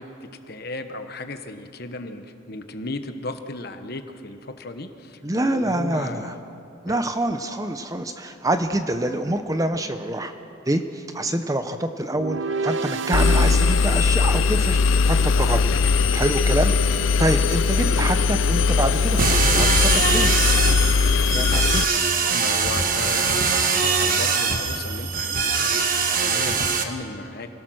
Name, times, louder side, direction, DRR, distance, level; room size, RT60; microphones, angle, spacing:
voice 1, 0.0-6.4 6.9-7.0 12.1-12.4 17.7-18.0 22.3-25.8 26.1-27.5, left 2 dB, 50° left, 8 dB, 1.2 m, -35 dB
voice 2, 5.2-6.3 6.8-10.3 10.6-15.6 16.1-20.3 21.3-21.8, right 1 dB, 15° right, 8 dB, 0.7 m, -26 dB
sound 1, 12.1-15.4, right 3 dB, 60° right, 0.7 m, -30 dB
Engine, 13.1-21.8, left 5 dB, 70° left, 0.4 m, -20 dB
sound 2, 19.2-26.8, right 5 dB, 40° right, 1.4 m, -22 dB
27.5 x 17.5 x 6.4 m, 2.7 s
head